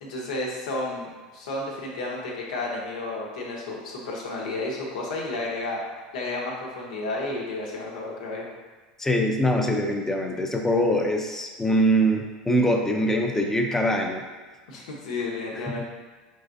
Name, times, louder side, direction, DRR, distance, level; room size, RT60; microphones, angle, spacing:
voice 1, 0.0-5.8 6.1-8.5 14.7-15.8, left 2 dB, 80° left, -2 dB, 1.1 m, -32 dB
voice 2, 9.0-14.2 15.7-15.8, equal, 10° left, 2 dB, 0.6 m, -23 dB
4.7 x 3.7 x 2.6 m, 1.4 s
hypercardioid pair, 85°, 4 cm